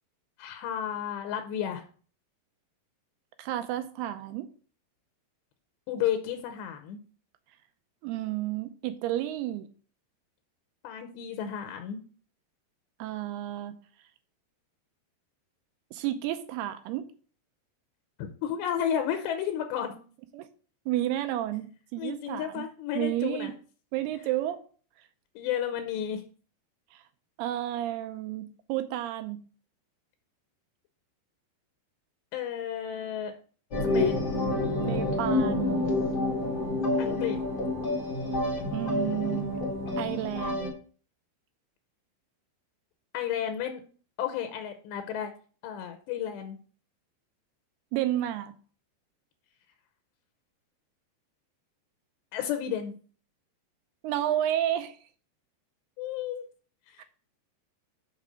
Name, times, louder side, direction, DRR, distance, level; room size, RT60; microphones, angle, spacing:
voice 1, 0.4-1.8 5.9-7.0 10.8-12.0 18.2-20.0 22.0-23.5 25.4-26.2 32.3-33.3 33.9-34.3 37.0-37.4 43.1-43.8 44.2-45.3 45.6-46.6 52.3-52.9 56.0-56.5 56.9-57.0, left 9 dB, 85° left, 3.0 m, -32 dB
voice 2, 3.4-4.5 8.0-9.7 13.0-13.8 15.9-17.1 20.3-20.5 20.9-22.6 23.0-23.5 23.9-24.6 26.9-27.0 27.4-29.4 34.8-35.8 38.7-39.6 40.0-40.7 47.9-48.5 54.0-55.0 57.0-57.1, right 13 dB, 80° right, 2.4 m, -31 dB
sound 1, 33.7-40.7, left 2 dB, 50° left, 1.2 m, -28 dB
6.8 x 5.8 x 5.1 m
omnidirectional pair, 4.9 m